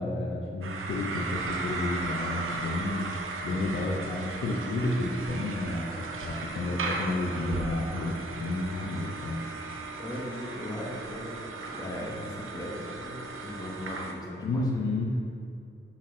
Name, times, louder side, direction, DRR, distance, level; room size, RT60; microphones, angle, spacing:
voice 1, 0.0-3.2 3.4-9.4 14.4-15.2, left 2 dB, 70° left, -1 dB, 0.8 m, -31 dB
sound 1, 0.6-14.1, right 3 dB, 75° right, 0.7 m, -36 dB
voice 2, 10.0-14.8, left 1 dB, 15° left, -4 dB, 1.3 m, -38 dB
6.2 x 5.9 x 3.8 m, 2.6 s
wide cardioid pair, 110°, 21 cm